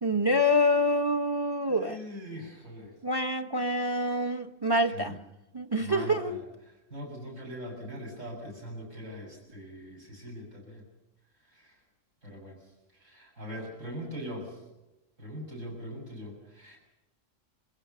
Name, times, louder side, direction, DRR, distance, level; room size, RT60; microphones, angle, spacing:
voice 1, 0.0-2.0 3.0-5.2 5.5-6.4, left 1 dB, 20° right, 1.1 m, -26 dB
voice 2, 1.7-2.9 4.9-5.1 5.8-6.4 6.9-10.8 11.5-11.7 12.2-12.6 13.0-14.6 15.2-16.8, equal, 70° right, 7.7 m, -41 dB
27.0 x 15.5 x 6.9 m
omnidirectional pair, 1.3 m